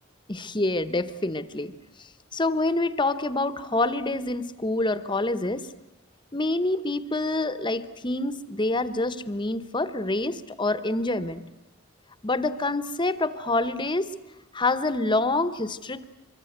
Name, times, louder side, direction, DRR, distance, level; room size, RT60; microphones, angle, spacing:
voice 1, 0.3-1.7 2.3-5.7 6.3-11.4 12.2-14.1 14.5-16.0, left 2 dB, 25° left, 13 dB, 1.0 m, -26 dB
24.5 x 24.0 x 8.0 m, 0.98 s
head